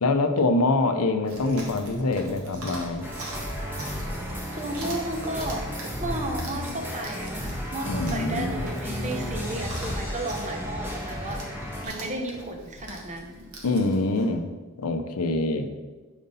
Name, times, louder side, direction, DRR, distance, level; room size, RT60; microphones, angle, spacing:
voice 1, 0.0-3.0 7.8-8.6 13.6-14.5 14.8-15.7, left 2 dB, 90° left, 7 dB, 0.6 m, -25 dB
Chewing mastication, 1.2-14.3, right 1 dB, 85° right, 1.6 m, -42 dB
sound 1, 3.0-11.9, equal, 10° right, 1.2 m, -33 dB
voice 2, 4.5-5.7 6.0-13.5, right 1 dB, 35° right, 3 dB, 0.9 m, -33 dB
5.4 x 5.1 x 5.3 m, 1.3 s
head